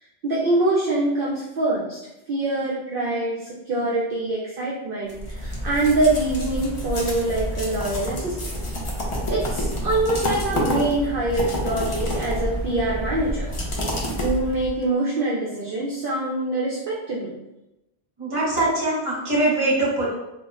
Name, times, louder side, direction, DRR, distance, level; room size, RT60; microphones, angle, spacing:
voice 1, 0.2-2.0 2.3-8.5 9.3-13.5 14.2-17.3, right 2 dB, 60° right, -5 dB, 0.7 m, -24 dB
sound 1, 5.1-14.8, equal, 45° left, 0.4 m, -28 dB
voice 2, 18.2-20.1, right 2 dB, 30° right, -5 dB, 0.8 m, -22 dB
2.2 x 2.0 x 3.5 m, 0.93 s
omnidirectional pair, 1.1 m